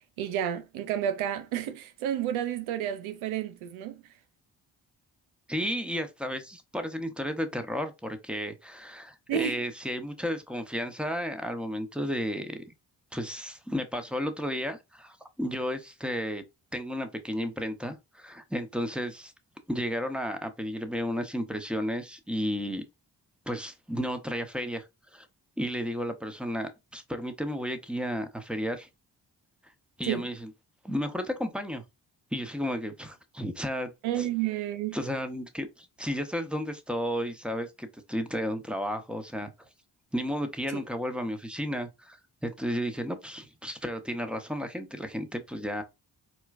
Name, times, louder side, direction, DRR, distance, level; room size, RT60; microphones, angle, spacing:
voice 1, 0.2-4.0 9.3-9.6 30.0-30.2 34.0-35.0, right 10 dB, 90° right, 0.6 m, -30 dB
voice 2, 5.5-12.6 13.1-16.4 16.7-19.3 19.7-22.8 23.5-24.8 25.1-25.3 25.6-28.9 30.0-30.5 30.8-31.8 32.3-34.3 34.9-39.7 40.1-45.8, equal, ahead, 0.9 m, -33 dB
4.4 x 2.2 x 2.4 m
supercardioid pair, 45°, 46 cm